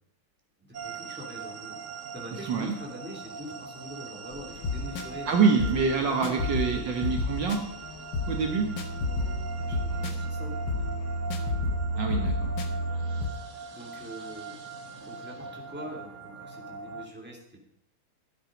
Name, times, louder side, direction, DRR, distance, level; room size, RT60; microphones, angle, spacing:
voice 1, 0.6-1.8 2.1-5.4 5.7-6.8 9.6-10.6 13.7-14.6 15.0-17.6, equal, 5° right, -2 dB, 2.8 m, -43 dB
sound 1, 0.7-17.1, right 5 dB, 40° right, 1.4 m, -42 dB
sound 2, 4.3-13.3, left 1 dB, 60° left, 1.7 m, -31 dB
voice 2, 5.3-7.6 8.3-8.7 12.0-12.5, right 5 dB, 60° right, 3 dB, 1.7 m, -25 dB
13.5 x 8.9 x 5.1 m, 0.80 s
omnidirectional pair, 2.3 m